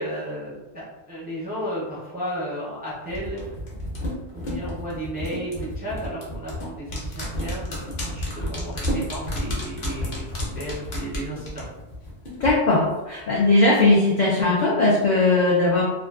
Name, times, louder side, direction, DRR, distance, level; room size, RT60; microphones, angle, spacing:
voice 1, 0.0-3.6 4.3-11.7, equal, 15° right, -8 dB, 0.3 m, -33 dB
sound 1, 3.1-12.5 12.8-12.9, left 1 dB, 50° left, 0.8 m, -31 dB
voice 2, 12.4-15.8, left 2 dB, 75° left, -4 dB, 0.4 m, -19 dB
2.5 x 2.3 x 2.3 m, 1.1 s
omnidirectional pair, 1.3 m